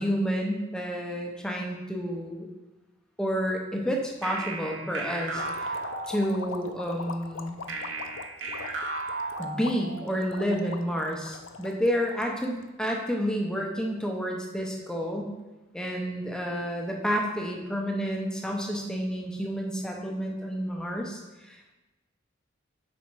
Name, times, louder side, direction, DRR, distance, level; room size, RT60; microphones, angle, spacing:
voice 1, 0.0-2.5 3.2-5.8 6.1-7.6 9.4-15.3 15.7-21.7, equal, 5° left, 0 dB, 0.6 m, -30 dB
sound 1, 4.2-6.7 7.7-10.2, right 3 dB, 70° right, 0.7 m, -35 dB
sound 2, 5.3-12.7, left 5 dB, 80° left, 0.5 m, -41 dB
4.9 x 4.2 x 4.6 m, 1.1 s
head